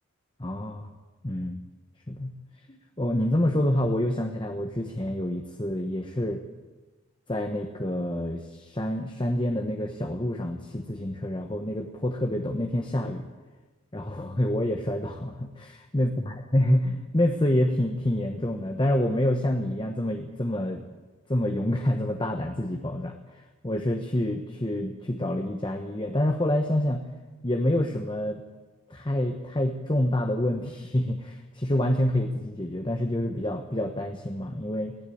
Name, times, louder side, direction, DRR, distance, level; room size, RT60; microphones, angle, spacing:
voice 1, 0.4-0.9 1.2-1.6 2.1-2.3 2.7-6.4 7.3-13.3 13.9-20.8 21.3-27.0 27.4-28.4 28.9-35.0, left 1 dB, 20° left, 4 dB, 1.1 m, -27 dB
19.5 x 16.0 x 8.6 m, 1.2 s
head